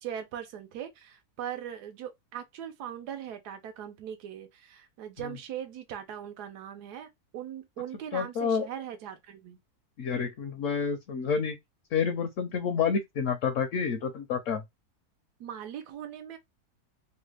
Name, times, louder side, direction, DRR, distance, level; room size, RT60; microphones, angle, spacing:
voice 1, 0.0-9.6 15.4-16.4, right 9 dB, 85° right, 1.2 m, -40 dB
voice 2, 8.1-8.7 10.0-11.6 11.9-14.6, left 6 dB, 65° left, 0.8 m, -29 dB
3.1 x 2.2 x 3.2 m
omnidirectional pair, 1.7 m